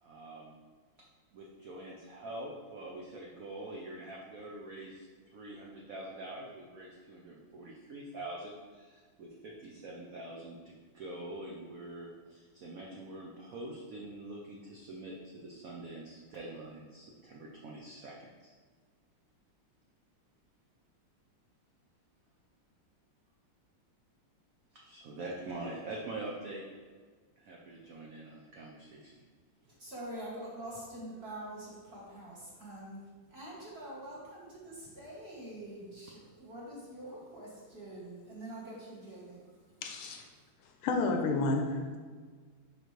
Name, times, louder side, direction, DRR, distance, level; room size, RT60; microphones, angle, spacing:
voice 1, 0.0-0.6 1.3-5.1 5.3-18.5 24.7-26.6 27.4-29.3, right 2 dB, 80° right, -3 dB, 0.7 m, -45 dB
voice 2, 29.7-33.0 33.3-39.8 40.3-40.5, right 1 dB, 35° right, -6 dB, 1.4 m, -45 dB
voice 3, 39.8-40.3 40.8-42.0, left 3 dB, 80° left, 3 dB, 1.4 m, -30 dB
5.9 x 5.0 x 3.2 m, 1.5 s
omnidirectional pair, 2.4 m